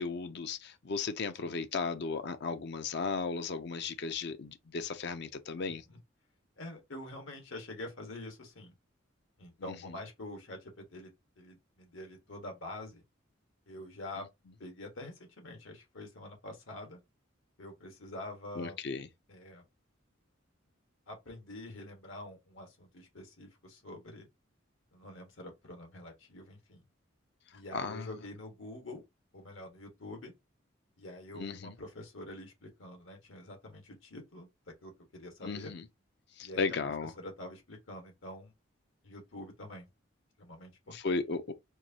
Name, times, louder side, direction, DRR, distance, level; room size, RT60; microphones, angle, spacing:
voice 1, 0.0-5.8 9.7-9.9 14.2-14.3 18.6-19.1 27.7-28.1 31.3-31.7 35.4-35.9 36.4-37.1 40.9-41.5, left 4 dB, 55° left, 0.5 m, -35 dB
voice 2, 5.7-6.0 6.6-8.7 9.4-11.1 11.4-13.0 13.7-14.3 14.6-17.0 17.6-18.8 19.3-19.6 21.1-24.3 24.9-26.8 27.5-29.0 29.3-30.3 31.0-35.7 36.4-36.7 37.2-38.5 39.0-39.9 40.4-41.0, left 1 dB, 80° left, 1.5 m, -46 dB
4.6 x 2.6 x 2.8 m
head